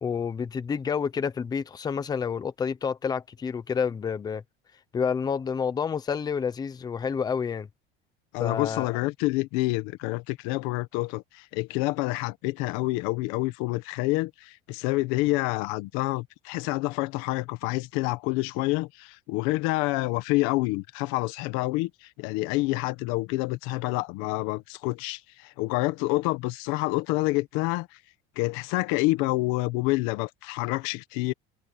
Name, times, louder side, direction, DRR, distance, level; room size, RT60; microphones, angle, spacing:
voice 1, 0.0-4.4 4.9-7.7 8.4-8.8, left 6 dB, 20° left, 0.8 m, -29 dB
voice 2, 8.3-28.0 28.4-31.3, left 21 dB, 85° left, 1.3 m, -28 dB
cardioid pair, 165°, 21 cm